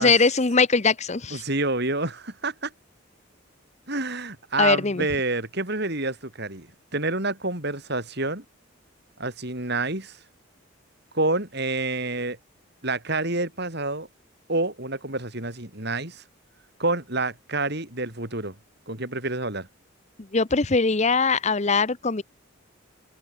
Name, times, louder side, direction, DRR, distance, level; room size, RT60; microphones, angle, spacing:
voice 1, 0.0-1.4 4.6-5.1 20.3-22.2, left 4 dB, 35° left, 0.9 m, -21 dB
voice 2, 1.3-2.7 3.9-6.7 6.9-8.4 9.2-10.2 11.1-12.4 12.8-14.1 14.5-16.2 16.8-18.5 18.9-19.7, right 2 dB, 55° right, 6.5 m, -28 dB
head